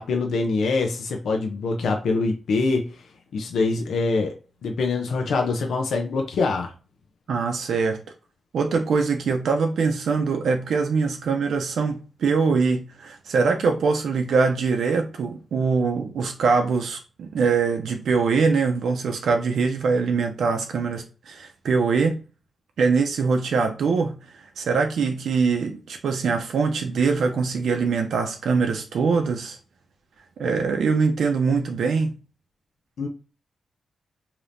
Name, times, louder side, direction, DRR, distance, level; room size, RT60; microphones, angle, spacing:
voice 1, 0.0-2.9 3.3-4.3 4.6-6.7 33.0-33.1, left 3 dB, 90° left, 0.6 m, -24 dB
voice 2, 7.3-8.0 8.5-22.2 22.8-29.6 30.4-32.1, right 5 dB, 85° right, 0.5 m, -23 dB
5.0 x 2.9 x 2.6 m
wide cardioid pair, 180°, 0 cm